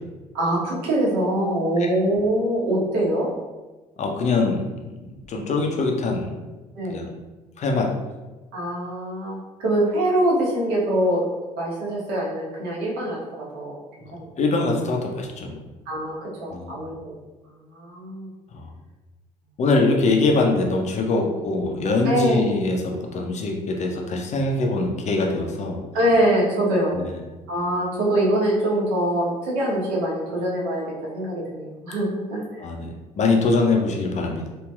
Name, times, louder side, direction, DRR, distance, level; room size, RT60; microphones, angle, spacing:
voice 1, 0.3-3.3 6.7-7.0 8.5-11.3 11.6-13.8 14.1-14.3 15.9-17.1 17.7-18.3 22.0-22.5 25.9-27.0 27.5-32.6, right 1 dB, 60° right, -6 dB, 1.2 m, -24 dB
voice 2, 4.0-6.3 6.9-7.0 7.6-7.9 14.4-15.6 16.5-16.7 18.5-18.7 19.6-25.8 26.9-27.1 32.6-34.5, left 3 dB, 35° left, 1 dB, 0.6 m, -23 dB
3.0 x 2.9 x 2.3 m, 1.2 s
figure-of-eight pair, 50°, 19 cm